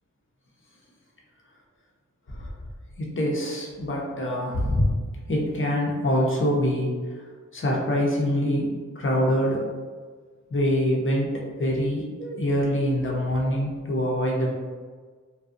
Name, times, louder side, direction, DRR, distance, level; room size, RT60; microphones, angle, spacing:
voice 1, 3.0-5.0 5.3-7.0 7.5-9.6 10.5-14.5, equal, 40° left, -3 dB, 0.7 m, -25 dB
2.6 x 2.3 x 2.4 m, 1.5 s
wide cardioid pair, 55°, 31 cm